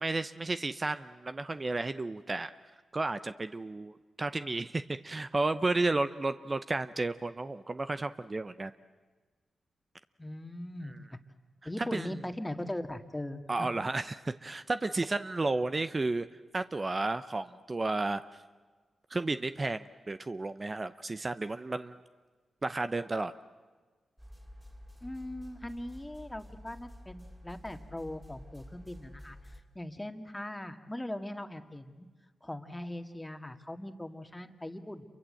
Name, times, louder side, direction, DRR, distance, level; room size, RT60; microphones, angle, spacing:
voice 1, 0.0-2.5 2.9-8.7 10.9-11.0 11.8-12.1 13.5-16.3 16.5-18.2 19.1-22.0 22.6-23.3, right 2 dB, 35° right, 11 dB, 0.8 m, -32 dB
voice 2, 10.2-11.2 11.7-13.7 25.0-29.4 29.8-32.1 32.4-35.0, left 1 dB, 15° left, 7 dB, 1.9 m, -40 dB
sound 1, 24.2-29.6, left 1 dB, 5° right, 2.9 m, -50 dB
28.0 x 23.5 x 7.8 m, 1.4 s
cardioid pair, 55°, 0 cm